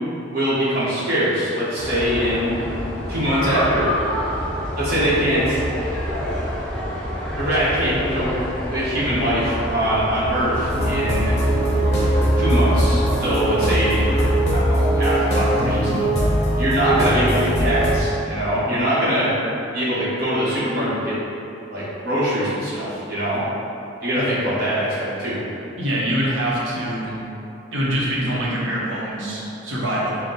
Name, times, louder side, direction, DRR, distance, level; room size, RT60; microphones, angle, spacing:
voice 1, 0.3-2.6 3.1-3.9 4.8-5.6 7.3-8.4 8.7-11.4 12.4-14.1 14.5-16.1 16.6-19.3 19.7-21.2 21.7-23.4 24.0-25.4, equal, 50° right, -10 dB, 1.2 m, -22 dB
sound 1, 1.8-14.4, left 1 dB, 5° left, 0.5 m, -27 dB
sound 2, 10.7-18.0, right 1 dB, 35° left, 0.8 m, -20 dB
voice 2, 25.8-27.2 27.7-30.2, equal, 80° right, -6 dB, 0.9 m, -24 dB
4.4 x 2.2 x 3.9 m, 2.8 s
head